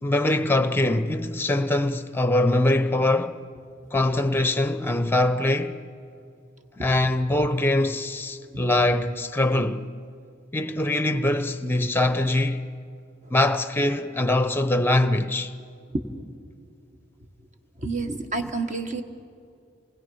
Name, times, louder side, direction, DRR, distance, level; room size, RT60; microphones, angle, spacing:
voice 1, 0.0-3.4 3.9-5.8 6.8-9.9 10.5-12.7 13.3-15.5, left 1 dB, 10° left, 0.7 m, -23 dB
voice 2, 17.8-19.0, right 3 dB, 35° right, 1.4 m, -29 dB
28.5 x 20.0 x 5.6 m
head